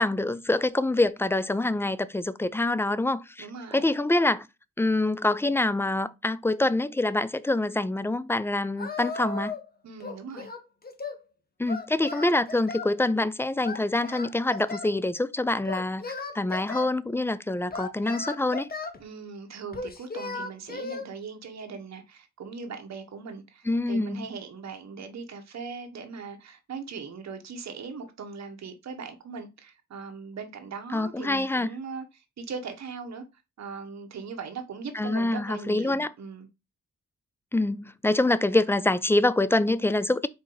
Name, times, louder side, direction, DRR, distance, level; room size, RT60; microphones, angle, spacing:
voice 1, 0.0-3.5 3.7-4.5 4.8-9.5 11.6-18.7 23.7-24.3 30.9-31.7 34.9-36.1 37.5-40.3, left 2 dB, 10° left, 0.3 m, -25 dB
voice 2, 3.4-3.8 9.8-10.5 19.0-36.5, right 5 dB, 65° right, 0.9 m, -40 dB
Singing, 8.8-9.7 10.0-11.2 11.7-12.9 13.6-14.9 15.6-16.9 17.7-19.0 19.7-21.1, left 3 dB, 30° left, 0.8 m, -36 dB
4.2 x 2.6 x 3.8 m
cardioid pair, 50°, 29 cm